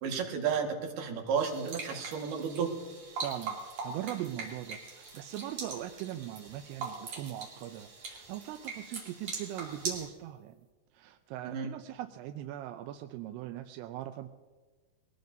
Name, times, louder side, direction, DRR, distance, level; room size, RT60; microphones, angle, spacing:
voice 1, 0.0-2.7 11.4-11.7, right 6 dB, 75° right, 1 dB, 3.5 m, -32 dB
sound 1, 1.4-10.1, right 4 dB, 45° right, 3.5 m, -42 dB
voice 2, 3.2-10.6 10.9-14.3, right 13 dB, 90° right, 6 dB, 2.7 m, -40 dB
21.5 x 19.5 x 2.7 m, 1.3 s
omnidirectional pair, 4.7 m